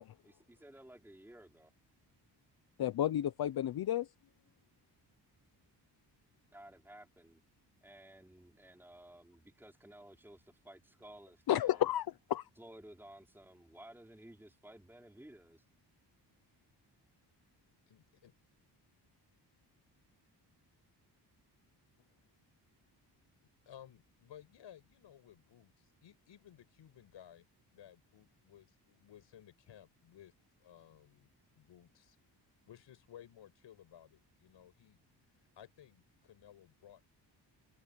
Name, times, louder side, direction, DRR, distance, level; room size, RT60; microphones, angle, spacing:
voice 1, 0.0-1.7 6.5-7.4 7.8-11.8 12.6-15.6, right 1 dB, 5° right, 3.8 m, -56 dB
voice 2, 2.8-4.1 11.5-12.5, left 12 dB, 60° left, 0.7 m, -32 dB
voice 3, 17.9-18.3 23.7-27.5 27.7-30.3 30.6-31.3 31.5-32.2 32.7-35.0 35.6-37.1, left 10 dB, 90° left, 6.0 m, -57 dB
wide cardioid pair, 160°, 42 cm